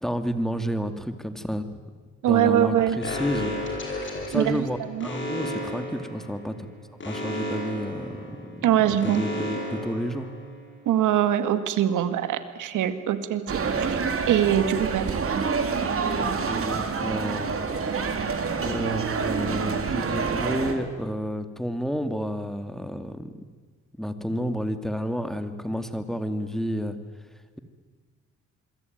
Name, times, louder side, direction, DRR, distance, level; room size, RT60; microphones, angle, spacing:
voice 1, 0.0-1.8 2.3-3.5 3.9-6.5 7.0-10.3 12.4-12.5 16.2-17.6 18.6-23.3 24.0-27.0, equal, ahead, 9 dB, 2.5 m, -30 dB
voice 2, 2.2-3.0 4.3-5.1 8.6-9.2 10.9-14.0 14.3-15.2, right 11 dB, 80° right, 10 dB, 2.2 m, -23 dB
Alarm, 3.0-10.8, left 1 dB, 40° left, 8.0 m, -34 dB
sound 1, 13.5-20.7, right 5 dB, 45° right, 3.6 m, -27 dB
27.0 x 23.0 x 9.5 m, 1.5 s
cardioid pair, 90°, 30 cm